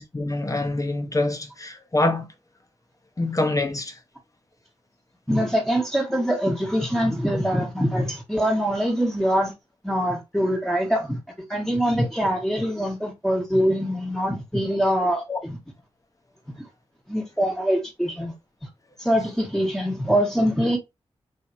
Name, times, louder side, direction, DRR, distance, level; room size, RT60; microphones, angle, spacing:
voice 1, 0.0-2.3 3.2-4.0 15.3-15.4, left 2 dB, 30° left, 0.8 m, -25 dB
voice 2, 5.3-9.5 9.8-11.2 11.5-15.6 16.6-16.7 17.1-18.3 19.0-20.8, equal, 5° left, 1.4 m, -23 dB
3.2 x 2.8 x 2.6 m
cardioid pair, 45°, 11 cm